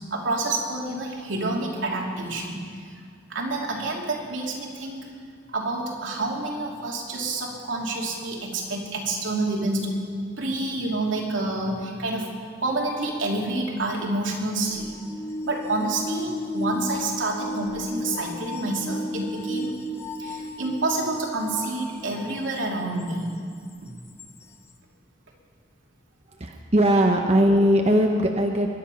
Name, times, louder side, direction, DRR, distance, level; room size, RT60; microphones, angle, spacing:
voice 1, 0.1-2.6 3.3-5.1 5.5-10.0 10.4-12.3 12.6-14.9 15.4-19.7 20.2-23.3 23.8-23.9, right 2 dB, 75° right, -1 dB, 2.9 m, -28 dB
sound 1, 14.7-22.4 23.1-23.2 24.2-24.3, left 1 dB, 15° left, 0.9 m, -34 dB
voice 2, 26.4-28.7, equal, 35° right, 2 dB, 0.9 m, -20 dB
23.0 x 11.0 x 5.7 m, 2.1 s
head